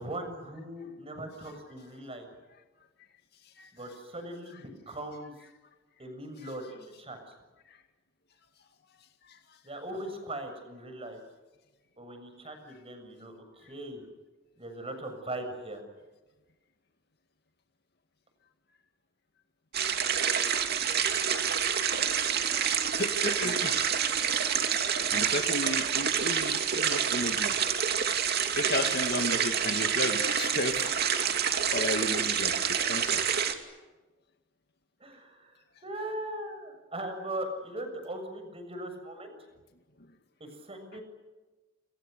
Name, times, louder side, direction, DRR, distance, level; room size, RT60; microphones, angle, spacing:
voice 1, 0.0-2.3 3.7-5.3 6.0-7.2 9.6-11.2 12.0-14.0 14.6-15.8 31.5-31.7 35.0-39.3 40.4-41.0, right 1 dB, 30° right, 6 dB, 7.0 m, -39 dB
sound 1, 19.7-33.5, right 8 dB, 55° right, 2.8 m, -28 dB
voice 2, 23.0-23.9 25.1-27.6 28.6-30.9 31.7-33.3 40.9-41.0, left 2 dB, 55° left, 6 dB, 2.1 m, -33 dB
29.5 x 28.0 x 6.8 m, 1.2 s
head